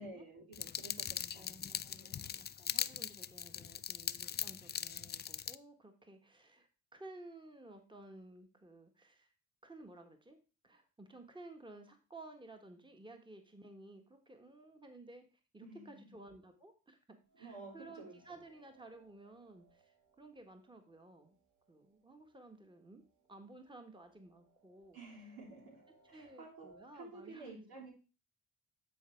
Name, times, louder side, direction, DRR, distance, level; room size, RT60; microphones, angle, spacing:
voice 1, 0.0-1.6 2.0-2.2 15.6-16.0 17.4-18.1 24.9-25.8 26.1-26.7 26.9-27.9, right 2 dB, 85° right, -2 dB, 3.3 m, -51 dB
sound 1, 0.5-5.6, left 8 dB, 30° left, 0.4 m, -40 dB
voice 2, 1.3-9.3 9.6-10.4 10.6-21.4 21.7-23.0 23.3-25.0 26.1-27.8, right 2 dB, 15° right, 5 dB, 1.5 m, -55 dB
sound 2, 17.3-21.3 21.7-21.8 22.8-22.9 23.2-27.1, right 2 dB, 55° right, 2.0 m, -65 dB
9.4 x 4.2 x 4.6 m, 0.34 s
supercardioid pair, 55°, 35 cm